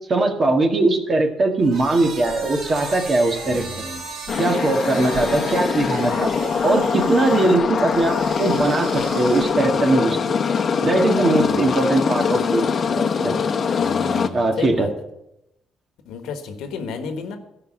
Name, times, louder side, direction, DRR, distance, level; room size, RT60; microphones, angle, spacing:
voice 1, 0.0-3.8 4.4-10.3 10.8-13.4 14.3-14.9, right 2 dB, 40° right, 3 dB, 1.8 m, -20 dB
sound 1, 1.6-9.8, right 3 dB, 75° right, 3.8 m, -36 dB
voice 2, 3.4-4.0 11.4-11.7 13.7-14.9 16.1-17.4, left 5 dB, 90° left, 7 dB, 1.4 m, -33 dB
sound 2, 4.3-14.3, left 6 dB, 50° left, 0.9 m, -22 dB
12.5 x 5.6 x 8.6 m, 0.86 s
cardioid pair, 90°, 0 cm